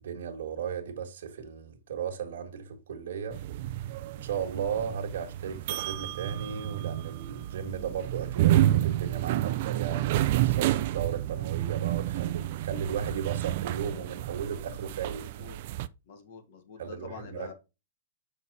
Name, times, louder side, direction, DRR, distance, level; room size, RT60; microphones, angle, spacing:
voice 1, 0.0-3.4 4.1-15.3 16.8-17.5, right 7 dB, 70° right, 1.4 m, -36 dB
sound 1, 3.3-15.9, right 14 dB, 50° right, 0.4 m, -29 dB
voice 2, 15.2-15.6 16.0-17.5, left 6 dB, 55° left, 1.6 m, -47 dB
6.2 x 5.5 x 2.8 m
hypercardioid pair, 150°, 0 cm